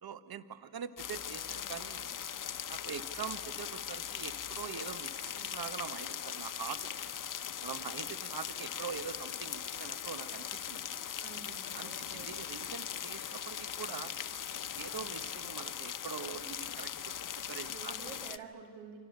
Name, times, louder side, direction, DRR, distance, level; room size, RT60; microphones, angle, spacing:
voice 1, 0.0-2.1 2.7-6.8 7.6-10.9 11.7-14.1 14.7-16.9 17.5-17.9, right 7 dB, 55° right, 12 dB, 1.6 m, -43 dB
sound 1, 1.0-18.4, left 9 dB, 45° left, 1.0 m, -40 dB
voice 2, 11.2-12.4 17.7-19.0, right 6 dB, 85° right, 4 dB, 2.6 m, -49 dB
29.5 x 25.0 x 6.8 m, 2.2 s
supercardioid pair, 50°, 44 cm